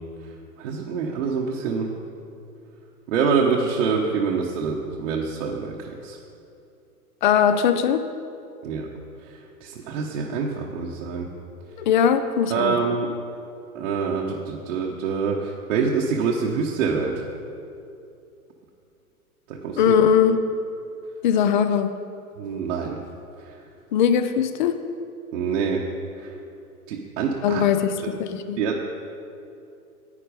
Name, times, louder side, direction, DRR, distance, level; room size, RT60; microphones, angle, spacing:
voice 1, 0.6-1.9 3.1-6.2 8.6-8.9 9.3-11.3 12.5-13.1 13.7-17.2 19.5-19.9 22.4-23.0 23.4-23.5 25.3-25.8 26.2-26.3 26.9-27.6 28.6-28.9, right 5 dB, 55° right, -2 dB, 1.2 m, -26 dB
voice 2, 7.2-8.0 11.8-12.8 19.8-20.4 21.2-21.9 23.9-24.8 27.4-28.6, left 8 dB, 35° left, 10 dB, 0.5 m, -20 dB
9.9 x 8.7 x 5.2 m, 2.6 s
hypercardioid pair, 125°, 46 cm